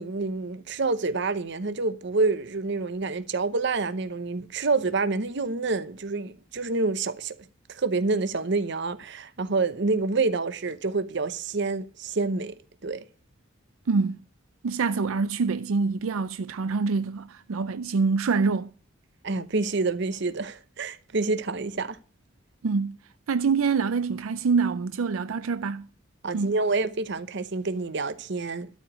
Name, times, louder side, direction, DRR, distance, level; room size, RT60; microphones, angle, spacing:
voice 1, 0.0-7.4 7.7-13.0 19.2-22.0 26.2-28.7, right 3 dB, 60° right, 0.8 m, -27 dB
voice 2, 13.9-14.2 14.6-18.7 22.6-23.0 23.3-25.9 26.3-26.6, right 4 dB, 90° right, 0.5 m, -25 dB
12.5 x 4.9 x 8.2 m
head